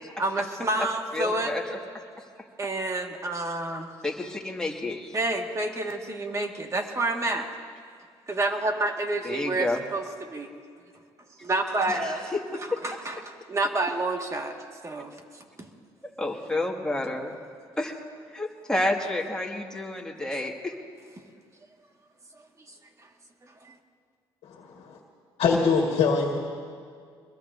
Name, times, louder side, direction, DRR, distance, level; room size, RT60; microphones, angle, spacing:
voice 1, 0.2-1.5 2.6-3.9 5.1-7.5 8.3-10.5 11.4-12.3 12.8-14.5 14.8-15.7 23.6-23.7, right 2 dB, 30° right, 3 dB, 1.9 m, -29 dB
voice 2, 1.1-1.8 4.0-5.2 9.2-9.8 11.9-12.4 12.7-12.8 16.2-17.4 17.8-17.9 18.3-20.7, left 2 dB, 5° left, -1 dB, 2.1 m, -30 dB
voice 3, 24.4-25.0 25.4-26.4, left 5 dB, 70° left, 0 dB, 1.8 m, -24 dB
24.0 x 21.0 x 2.7 m, 2.1 s
cardioid pair, 85°, 10 cm